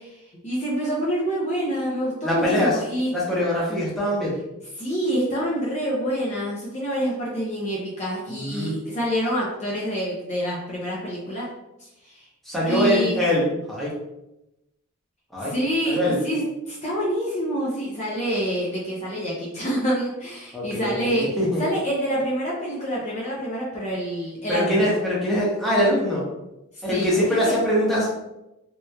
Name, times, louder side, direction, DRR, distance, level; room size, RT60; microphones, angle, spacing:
voice 1, 0.0-3.1 4.8-11.5 12.0-12.3 12.7-13.2 15.4-21.3 21.6-24.9 26.9-27.6, equal, 30° left, -5 dB, 0.6 m, -27 dB
voice 2, 2.2-2.8 3.1-4.4 8.3-8.8 12.5-14.0 15.3-15.5 15.9-16.2 20.5-21.6 24.5-26.3 26.8-28.1, equal, ahead, -7 dB, 0.8 m, -23 dB
3.3 x 2.9 x 2.2 m, 0.92 s
head